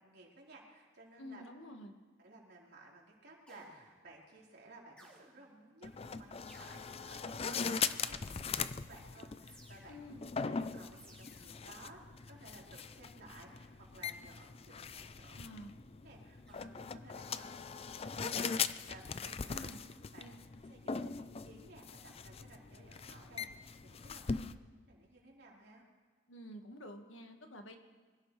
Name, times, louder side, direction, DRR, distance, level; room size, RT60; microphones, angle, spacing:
voice 1, 0.0-1.4 2.2-10.0 10.5-12.0 12.3-15.4 16.0-19.7 20.1-20.3 20.6-23.5 23.8-24.5 24.9-25.8, right 2 dB, 55° right, -3 dB, 4.0 m, -57 dB
voice 2, 1.2-2.0 9.9-10.2 15.4-15.7 19.5-19.8 20.2-20.4 24.3-24.5 26.3-27.8, equal, 80° left, 5 dB, 1.7 m, -49 dB
sound 1, 3.5-4.1 5.0-5.6 6.5-7.2 8.0-8.7 9.5-10.2 11.0-11.7 13.5-13.9 15.0-15.4 16.5-16.9 18.0-18.5, right 1 dB, 5° left, 3.7 m, -62 dB
sound 2, 5.8-24.5, left 6 dB, 30° left, 0.4 m, -41 dB
25.0 x 16.5 x 3.3 m, 1.5 s
head